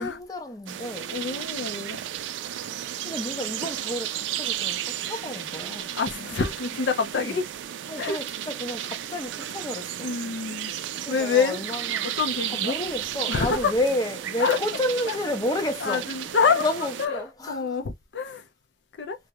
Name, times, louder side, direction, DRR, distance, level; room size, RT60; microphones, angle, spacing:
voice 1, 0.0-1.1 3.0-5.9 7.1-7.4 7.9-10.1 11.1-12.1 12.5-16.1 16.5-17.8, left 1 dB, 20° left, 0.5 m, -31 dB
sound 1, 0.7-17.1, right 11 dB, 90° right, 0.3 m, -33 dB
voice 2, 1.1-2.0 5.9-7.5 8.0-8.2 10.0-10.7 11.1-11.6 12.0-12.7 13.3-13.7 14.4-14.6 15.1-15.2 15.8-16.7 17.0-18.5 19.0-19.2, left 5 dB, 75° left, 0.5 m, -26 dB
2.3 x 2.1 x 2.8 m
head